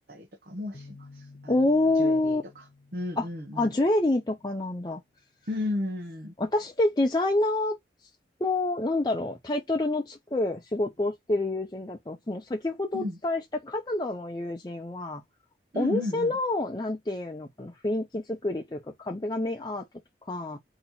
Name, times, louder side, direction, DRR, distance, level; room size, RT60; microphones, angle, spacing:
voice 1, 0.0-1.6 1.9-2.4 2.9-3.8 5.5-6.3 12.9-13.2 15.7-16.4, left 1 dB, 55° right, 1.0 m, -34 dB
sound 1, 0.7-4.4, left 3 dB, 55° left, 0.8 m, -52 dB
voice 2, 1.5-2.4 3.2-3.3 3.6-5.0 6.4-7.8 8.4-15.2 15.7-19.9 20.3-20.6, left 2 dB, 25° left, 0.6 m, -27 dB
4.2 x 2.9 x 4.1 m
head